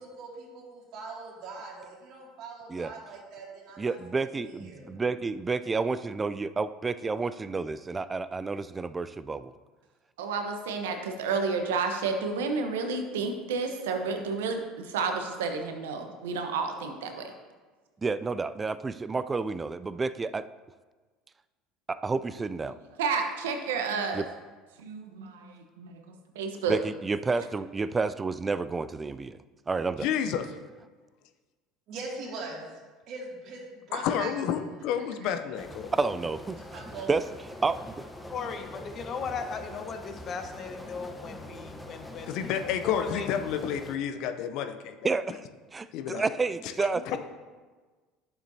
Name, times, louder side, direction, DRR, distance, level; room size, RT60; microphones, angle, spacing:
voice 1, 0.0-4.0 4.3-4.9 31.9-32.8 33.1-34.6 34.9-35.1 36.7-37.1, right 3 dB, 60° right, -2 dB, 2.4 m, -41 dB
voice 2, 3.8-9.5 18.0-20.4 21.9-22.8 24.1-24.3 26.7-29.4 29.7-30.1 36.0-36.6 37.1-37.2 37.6-37.9 45.0-45.5 45.7-47.0, right 4 dB, 25° right, 14 dB, 0.4 m, -30 dB
voice 3, 10.2-17.3 23.0-24.2 24.8-26.8, right 4 dB, 80° right, 5 dB, 1.0 m, -31 dB
voice 4, 30.0-30.5 33.9-35.9 42.3-45.0 45.9-46.2, left 8 dB, 65° left, 8 dB, 0.6 m, -30 dB
sound 1, 35.6-44.0, left 1 dB, 5° left, 1.0 m, -44 dB
voice 5, 38.3-42.5 42.8-43.3 47.0-47.2, left 5 dB, 45° left, 6 dB, 1.0 m, -37 dB
11.5 x 7.0 x 2.8 m, 1.4 s
hypercardioid pair, 75°, 0 cm